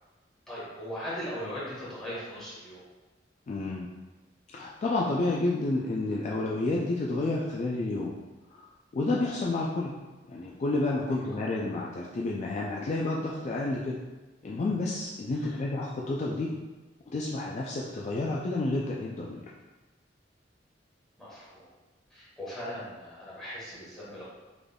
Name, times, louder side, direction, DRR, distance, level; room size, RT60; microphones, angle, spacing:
voice 1, 0.5-2.8 11.2-11.4 15.3-15.6 21.2-21.7 22.1-24.2, equal, 5° left, -9 dB, 1.3 m, -39 dB
voice 2, 3.5-3.9 4.5-8.1 8.5-8.7 8.9-9.9 10.3-14.0 14.4-16.5 17.1-19.4, left 2 dB, 40° left, -3 dB, 0.3 m, -30 dB
3.7 x 3.4 x 2.2 m, 1.2 s
head